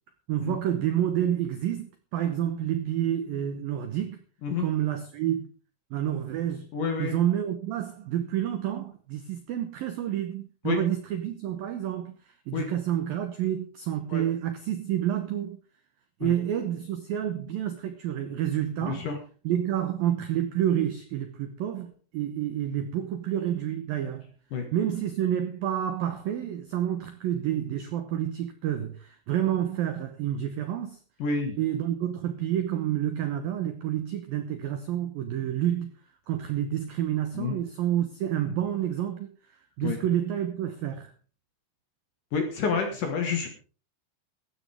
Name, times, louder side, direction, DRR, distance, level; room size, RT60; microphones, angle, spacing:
voice 1, 0.3-4.2 4.6-5.5 5.9-6.7 7.0-15.6 16.2-19.1 19.4-24.3 24.7-31.0 31.6-35.9 36.3-39.3 39.8-41.1, right 11 dB, 80° right, 2.1 m, -29 dB
voice 2, 6.7-7.1 10.6-10.8 12.5-12.7 14.1-14.2 16.2-16.3 18.8-19.2 24.5-24.7 31.2-31.6 37.3-37.6 39.8-40.0 42.3-43.5, left 5 dB, 55° left, 2.5 m, -28 dB
16.0 x 13.5 x 3.6 m
omnidirectional pair, 5.8 m